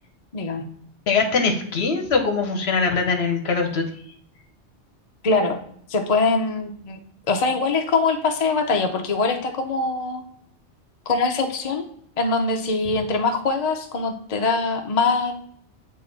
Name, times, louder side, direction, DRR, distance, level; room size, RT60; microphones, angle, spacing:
voice 1, 0.3-0.6 5.2-5.6 5.9-7.0 7.3-10.2 11.1-11.8 12.2-15.3, left 3 dB, 40° left, 4 dB, 0.6 m, -23 dB
voice 2, 1.1-3.9, left 4 dB, 65° left, 5 dB, 1.1 m, -22 dB
8.3 x 2.9 x 3.9 m, 0.63 s
omnidirectional pair, 1.2 m